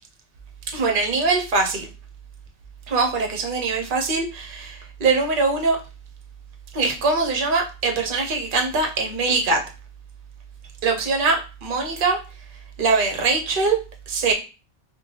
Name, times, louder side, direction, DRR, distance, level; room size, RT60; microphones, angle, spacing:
voice 1, 0.7-1.9 2.9-5.8 6.7-9.6 10.8-12.2 12.8-13.8 14.1-14.3, right 4 dB, 50° right, 2 dB, 0.9 m, -22 dB
3.9 x 2.3 x 3.2 m, 0.32 s
omnidirectional pair, 1.3 m